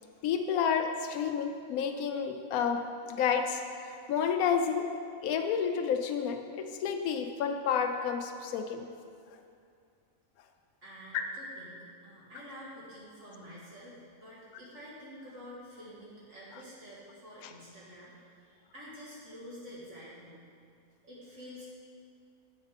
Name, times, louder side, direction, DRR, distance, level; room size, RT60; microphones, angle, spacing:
voice 1, 0.2-2.8 3.1-4.8 5.2-8.9 11.1-11.2, left 7 dB, 90° left, 6 dB, 1.1 m, -30 dB
voice 2, 10.8-20.4 21.0-21.7, equal, 55° right, -7 dB, 2.2 m, -48 dB
8.1 x 7.9 x 5.1 m, 2.3 s
omnidirectional pair, 1.5 m